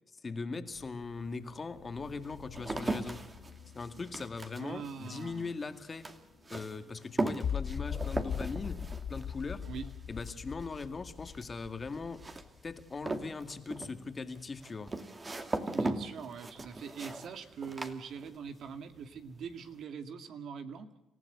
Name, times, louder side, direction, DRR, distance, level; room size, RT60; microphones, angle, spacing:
voice 1, 0.2-3.3 3.7-6.1 6.5-8.8 9.1-9.7 10.1-12.3 12.6-14.9, left 4 dB, 35° left, 9 dB, 2.1 m, -40 dB
sound 1, 0.7-7.5, left 8 dB, 85° left, 1.8 m, -56 dB
sound 2, 0.7-0.8 1.5-18.7 19.0-19.5, right 2 dB, 25° right, 2.5 m, -39 dB
voice 2, 4.5-5.5 9.6-9.9 15.7-20.9, right 6 dB, 70° right, 8 dB, 2.3 m, -42 dB
sound 3, 7.4-13.5, left 8 dB, 65° left, 1.2 m, -39 dB
27.5 x 15.5 x 8.2 m, 0.97 s
cardioid pair, 90°, 0 cm